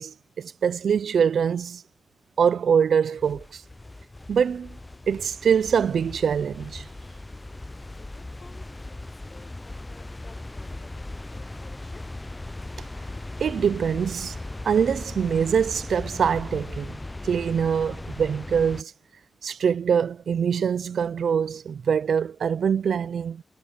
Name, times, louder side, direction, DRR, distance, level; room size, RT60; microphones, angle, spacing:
voice 1, 0.0-1.8 2.4-3.6 4.3-4.7 5.1-6.9 13.4-14.4 14.6-17.0 17.2-18.9 19.4-23.4, right 7 dB, 80° right, 0.4 m, -24 dB
sound 1, 3.2-18.8, left 2 dB, 25° left, 0.4 m, -38 dB
voice 2, 7.8-12.1, left 4 dB, 50° left, 4.9 m, -54 dB
cardioid pair, 55°, 0 cm